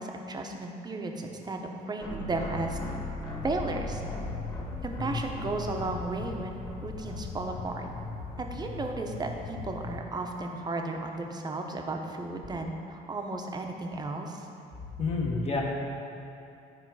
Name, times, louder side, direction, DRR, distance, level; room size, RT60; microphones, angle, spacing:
voice 1, 0.0-2.8 3.4-4.0 4.8-7.9 8.4-14.4, right 2 dB, 25° right, 3 dB, 0.9 m, -34 dB
sound 1, 2.0-8.4, left 1 dB, 20° left, 1.8 m, -39 dB
sound 2, 3.3-10.0, left 4 dB, 60° left, 0.8 m, -40 dB
voice 2, 15.0-15.6, left 3 dB, 40° left, -2 dB, 1.5 m, -29 dB
11.0 x 4.9 x 4.8 m, 2.7 s
cardioid pair, 110°, 17 cm